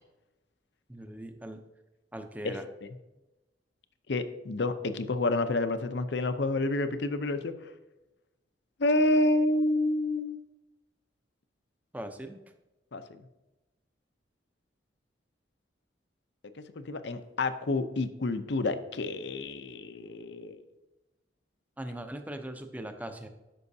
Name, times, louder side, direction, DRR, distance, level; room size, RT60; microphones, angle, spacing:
voice 1, 0.9-1.6 2.1-2.7 11.9-12.4 21.8-23.3, right 1 dB, 10° right, 6 dB, 0.6 m, -40 dB
voice 2, 4.1-7.5 8.8-10.4 12.9-13.2 16.8-20.6, left 2 dB, 65° left, 10 dB, 0.6 m, -29 dB
13.0 x 5.6 x 2.7 m, 1.0 s
head